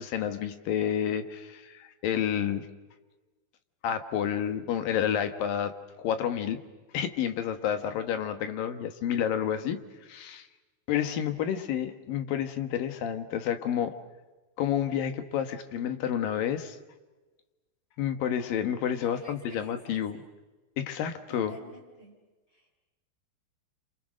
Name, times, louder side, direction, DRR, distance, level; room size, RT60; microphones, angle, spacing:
voice 1, 0.0-2.7 3.8-5.7 6.0-6.6 6.9-9.8 10.1-10.5 10.9-13.9 14.6-16.8 18.0-20.2 20.8-21.5, left 9 dB, 65° left, 8 dB, 2.7 m, -30 dB
voice 2, 18.9-20.3 21.3-22.2 22.5-22.8, equal, 30° left, 0 dB, 6.6 m, -50 dB
27.5 x 27.0 x 6.4 m, 1.2 s
omnidirectional pair, 5.1 m